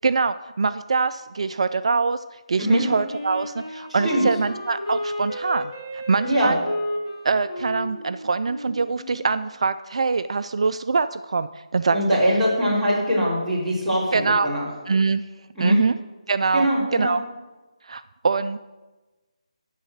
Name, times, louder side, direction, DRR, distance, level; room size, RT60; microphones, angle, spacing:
voice 1, 0.0-2.2 2.5-6.6 7.2-12.0 14.1-14.5 14.9-15.2 15.6-16.0 16.3-16.7 16.9-17.2 17.9-18.6, right 4 dB, 60° right, 11 dB, 0.4 m, -23 dB
Wind instrument woodwind instrument, 2.6-9.4, left 1 dB, 50° left, 2.0 m, -32 dB
voice 2, 3.9-4.2 6.2-6.5 11.9-14.7 15.6-15.8 16.5-17.1, equal, ahead, -14 dB, 3.7 m, -22 dB
12.0 x 4.0 x 7.9 m, 1.2 s
figure-of-eight pair, 160°, 4 cm